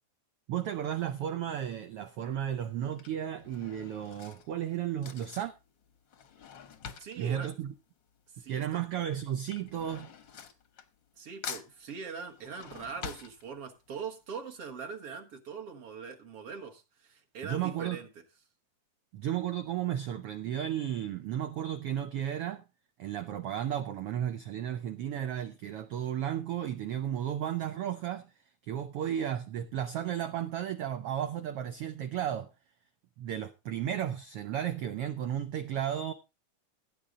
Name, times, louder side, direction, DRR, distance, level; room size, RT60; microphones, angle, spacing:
voice 1, 0.5-5.5 7.2-7.7 8.5-10.1 17.4-18.0 19.1-22.6 23.0-28.3 28.7-32.5 33.2-36.1, right 10 dB, 85° right, 1.3 m, -34 dB
Drawer open or close / Cutlery silverware, 1.4-1.8 2.7-8.5 8.8-11.2 11.4-14.0 14.4-14.5 14.7-14.8, left 7 dB, 60° left, 1.2 m, -46 dB
voice 2, 7.0-7.5 8.3-8.8 11.2-18.1, right 5 dB, 55° right, 1.9 m, -42 dB
16.0 x 8.6 x 3.7 m
omnidirectional pair, 3.6 m